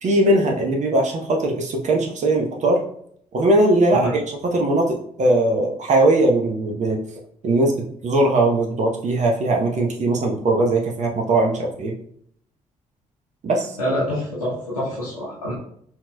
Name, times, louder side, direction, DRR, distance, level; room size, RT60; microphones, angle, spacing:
voice 1, 0.0-2.8 3.3-7.0 7.4-7.7 8.0-11.9 13.4-13.8, right 2 dB, 40° right, 1 dB, 0.8 m, -20 dB
voice 2, 13.8-15.5, equal, 90° left, -10 dB, 0.8 m, -26 dB
5.7 x 2.9 x 2.2 m, 0.65 s
figure-of-eight pair, 45°, 18 cm